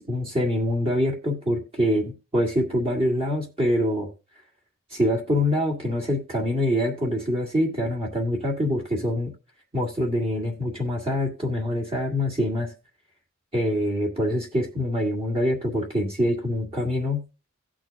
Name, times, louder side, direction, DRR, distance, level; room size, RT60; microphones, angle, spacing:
voice 1, 0.0-4.1 4.9-9.3 9.7-12.7 13.5-17.2, left 1 dB, 25° right, -2 dB, 2.0 m, -25 dB
18.0 x 6.2 x 2.4 m, 0.30 s
head